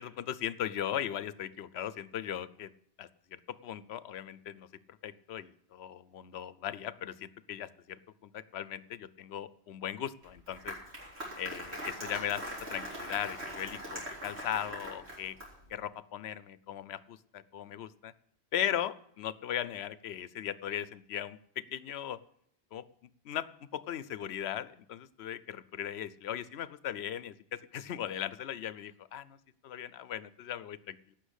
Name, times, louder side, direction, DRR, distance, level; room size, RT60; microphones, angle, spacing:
voice 1, 0.0-2.7 3.0-4.7 5.0-10.8 11.3-15.4 15.7-18.1 18.5-21.4 21.7-22.2 22.7-23.5 23.7-29.4 29.6-31.0, left 10 dB, 75° left, 17 dB, 0.9 m, -38 dB
Applause, 10.2-15.7, equal, 80° right, 3.9 m, -42 dB
16.5 x 6.2 x 8.1 m, 0.71 s
omnidirectional pair, 1.1 m